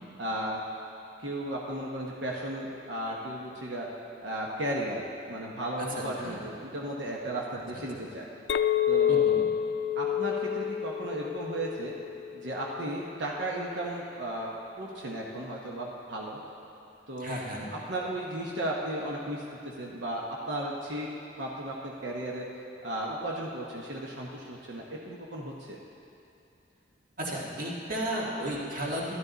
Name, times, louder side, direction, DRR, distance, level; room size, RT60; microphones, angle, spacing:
voice 1, 0.2-0.6 1.2-3.8 4.2-5.0 5.3-8.3 8.9-9.3 10.0-11.9 12.3-16.4 17.1-17.4 17.7-21.1 21.4-22.4 22.8-25.8, right 1 dB, 90° right, -3 dB, 1.1 m, -35 dB
voice 2, 5.8-6.4 7.7-7.8 9.1-9.4 17.2-17.7 27.2-29.2, equal, 50° right, -4 dB, 1.9 m, -34 dB
Chink clink, 8.5-13.0, left 9 dB, 70° left, 0.4 m, -28 dB
12.5 x 11.5 x 4.0 m, 2.7 s
head